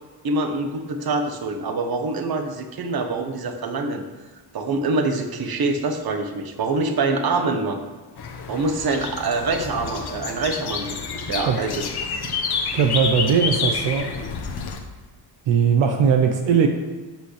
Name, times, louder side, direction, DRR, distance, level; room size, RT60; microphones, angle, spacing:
voice 1, 0.2-4.1 4.5-7.8 8.5-11.0 11.3-11.9 12.2-12.3, right 3 dB, 55° right, 6 dB, 1.3 m, -25 dB
sound 1, 8.2-14.8, left 5 dB, 55° left, 1.4 m, -29 dB
voice 2, 12.7-14.1 15.5-16.7, right 6 dB, 75° right, 4 dB, 1.0 m, -19 dB
12.5 x 8.2 x 3.4 m, 1.3 s
cardioid pair, 110°, 45 cm